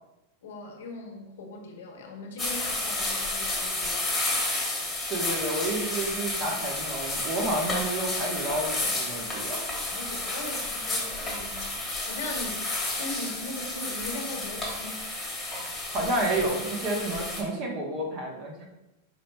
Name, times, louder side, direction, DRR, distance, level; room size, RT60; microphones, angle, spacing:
voice 1, 0.4-4.1 9.8-12.7 13.0-15.1, left 2 dB, 80° left, 1 dB, 1.1 m, -39 dB
sound 1, 2.4-17.4, left 2 dB, 10° left, 1.3 m, -31 dB
voice 2, 5.1-9.6 15.9-18.7, right 1 dB, 45° right, -1 dB, 1.2 m, -30 dB
5.0 x 4.2 x 2.3 m, 0.97 s
supercardioid pair, 145°, 0 cm